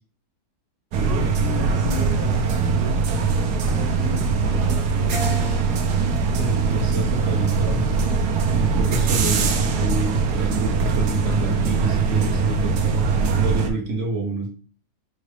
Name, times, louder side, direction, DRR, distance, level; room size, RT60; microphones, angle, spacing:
voice 1, 0.9-3.2 3.7-5.7, left 2 dB, 40° left, -2 dB, 0.7 m, -34 dB
sound 1, 0.9-13.7, right 5 dB, 90° right, 1.2 m, -21 dB
Keyboard (musical), 5.1-7.6 8.2-9.4, left 1 dB, 70° left, 1.3 m, -39 dB
voice 2, 6.4-8.0 8.5-14.5, right 3 dB, 55° right, -1 dB, 1.3 m, -28 dB
5.4 x 2.4 x 3.3 m, 0.40 s
omnidirectional pair, 1.6 m